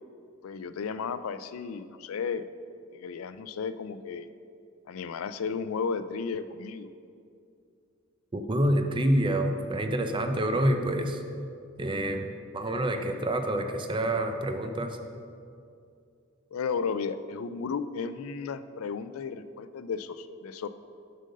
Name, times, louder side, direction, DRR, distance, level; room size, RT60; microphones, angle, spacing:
voice 1, 0.4-2.4 2.9-4.3 4.9-6.9 16.5-20.7, left 5 dB, 85° left, 13 dB, 0.4 m, -34 dB
voice 2, 8.3-11.2 11.8-15.0, right 1 dB, 25° right, 6 dB, 0.5 m, -27 dB
7.6 x 5.2 x 6.5 m, 2.4 s
head